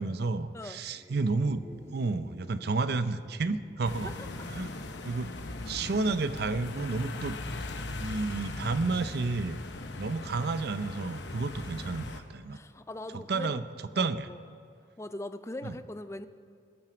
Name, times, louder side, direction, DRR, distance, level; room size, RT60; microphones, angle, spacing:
voice 1, 0.0-1.6 1.9-4.1 4.5-4.7 5.0-5.3 5.7-7.4 8.0-9.6 10.0-12.6 13.3-13.6 14.0-14.3 15.6-15.8, right 3 dB, 55° right, 12 dB, 0.5 m, -31 dB
sound 1, 0.9-4.9, equal, 15° right, 1.2 m, -52 dB
sound 2, 3.8-12.2, left 2 dB, 65° left, 0.9 m, -39 dB
voice 2, 12.5-13.6 13.9-14.4 15.0-16.3, left 1 dB, 15° left, 11 dB, 0.4 m, -41 dB
20.5 x 7.6 x 5.0 m, 2.4 s
head